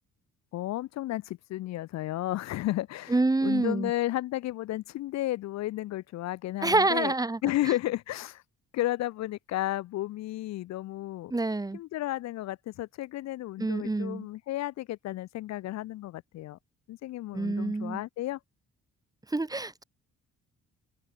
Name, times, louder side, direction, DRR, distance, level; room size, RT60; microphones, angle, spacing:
voice 1, 0.5-7.1 7.4-8.4 8.7-11.3 11.7-16.6 16.9-18.4, left 15 dB, 60° left, 0.4 m, -33 dB
voice 2, 3.1-3.9 6.6-7.4 7.7-7.8 11.3-11.8 13.6-14.3 17.3-18.0 19.3-19.8, right 2 dB, 10° right, 0.7 m, -27 dB
open air
cardioid pair, 90°, 30 cm